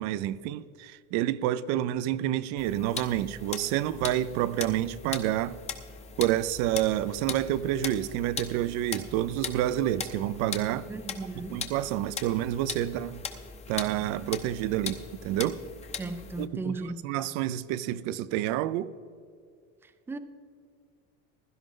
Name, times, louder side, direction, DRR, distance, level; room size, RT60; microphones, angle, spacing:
voice 1, 0.0-5.6 6.2-10.9 11.5-13.3 13.7-15.6 16.4-16.8 17.0-18.9, right 13 dB, 60° right, 0.6 m, -29 dB
sound 1, 2.6-16.5, left 6 dB, 20° left, 0.8 m, -40 dB
voice 2, 10.9-11.7 16.0-17.0 19.8-20.2, right 3 dB, 5° right, 0.4 m, -36 dB
16.0 x 12.0 x 3.8 m
cardioid pair, 160°, 31 cm